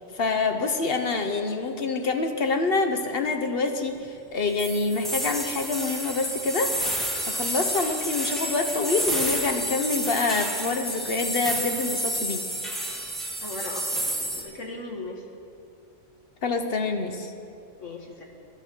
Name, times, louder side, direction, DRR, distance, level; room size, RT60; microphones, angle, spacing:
voice 1, 0.1-6.8 7.3-12.4 16.4-17.3, left 3 dB, 55° left, 6 dB, 1.1 m, -26 dB
sound 1, 4.6-14.4, right 1 dB, ahead, 1.9 m, -30 dB
voice 2, 13.4-15.2 17.8-18.2, left 2 dB, 85° left, 1 dB, 2.0 m, -38 dB
18.5 x 11.5 x 4.5 m, 2.5 s
omnidirectional pair, 1.3 m